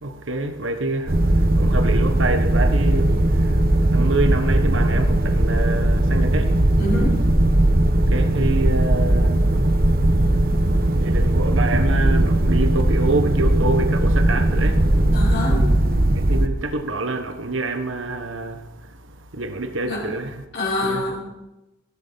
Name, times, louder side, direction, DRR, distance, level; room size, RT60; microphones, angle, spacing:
voice 1, 0.0-6.6 7.9-15.0 16.1-20.4 20.8-21.2, right 2 dB, 75° right, 1.4 m, -27 dB
sound 1, 1.1-16.5, right 1 dB, 50° right, 1.2 m, -18 dB
voice 2, 6.8-7.2 15.1-15.6 19.8-20.0 20.5-21.2, left 2 dB, 55° left, 4.9 m, -25 dB
17.0 x 14.5 x 4.2 m
head